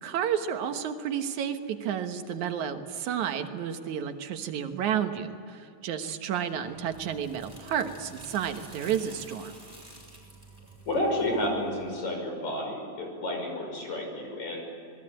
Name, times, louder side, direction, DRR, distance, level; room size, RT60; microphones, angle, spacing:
voice 1, 0.0-9.6, right 8 dB, 80° right, 7 dB, 2.7 m, -31 dB
sound 1, 6.5-12.0, right 2 dB, 15° right, 6.8 m, -50 dB
voice 2, 10.9-14.6, left 1 dB, 70° left, 2 dB, 7.2 m, -31 dB
27.5 x 20.5 x 8.8 m, 2.6 s
omnidirectional pair, 3.3 m